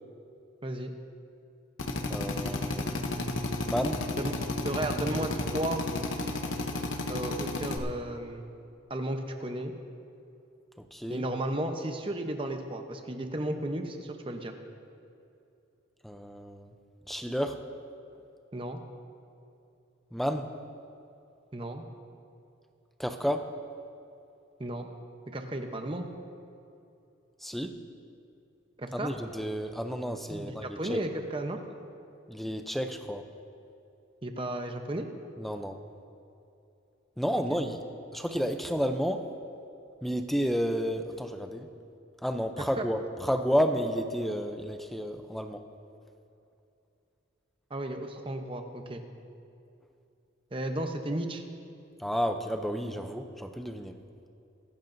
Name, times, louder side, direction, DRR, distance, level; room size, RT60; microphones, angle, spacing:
Drill, 1.8-7.8, left 2 dB, 70° left, 0.9 m, -32 dB
voice 1, 2.1-3.1 3.6-4.0 10.9-11.2 16.0-16.7 17.1-17.6 20.1-20.5 23.0-23.5 27.4-27.8 28.9-31.0 32.3-33.2 35.4-35.8 37.2-37.8 38.1-39.3 40.0-41.7 42.2-45.6 52.0-54.0, equal, ahead, 6 dB, 0.5 m, -31 dB
voice 2, 4.2-5.8 7.1-8.5 8.9-9.7 11.1-14.5 18.5-18.8 21.5-21.8 24.6-24.9 25.3-26.1 28.8-29.1 30.3-31.6 34.2-35.1 37.5-37.6 42.8-42.9 47.7-49.0 50.5-51.4, right 1 dB, 25° right, 5 dB, 0.8 m, -34 dB
24.0 x 11.5 x 2.7 m, 2.7 s
head